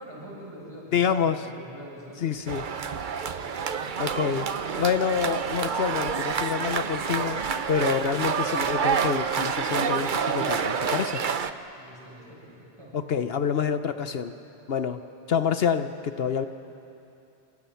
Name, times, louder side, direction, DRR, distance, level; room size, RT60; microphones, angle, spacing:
voice 1, 0.0-2.4 11.8-12.9, right 1 dB, 25° right, -5 dB, 7.7 m, -44 dB
voice 2, 0.9-1.4 2.2-2.7 4.0-4.5 4.8-11.2 12.9-14.3 14.7-15.0 15.3-16.5, left 7 dB, 70° left, 9 dB, 1.0 m, -27 dB
sound 1, 2.5-11.5, right 6 dB, 55° right, 0.9 m, -28 dB
28.0 x 26.5 x 5.7 m, 2.8 s
omnidirectional pair, 1.0 m